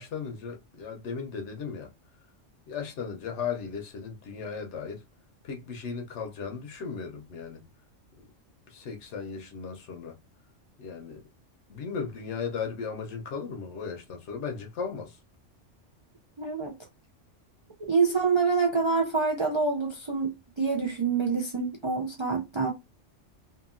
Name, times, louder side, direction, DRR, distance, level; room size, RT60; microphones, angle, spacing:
voice 1, 0.0-1.9 2.7-5.0 5.4-7.7 8.7-10.2 10.8-11.2 11.7-15.2, left 6 dB, 70° left, 1.0 m, -36 dB
voice 2, 16.4-16.7 17.9-20.3 20.6-22.7, right 4 dB, 50° right, 0.3 m, -26 dB
2.8 x 2.6 x 2.4 m
omnidirectional pair, 1.3 m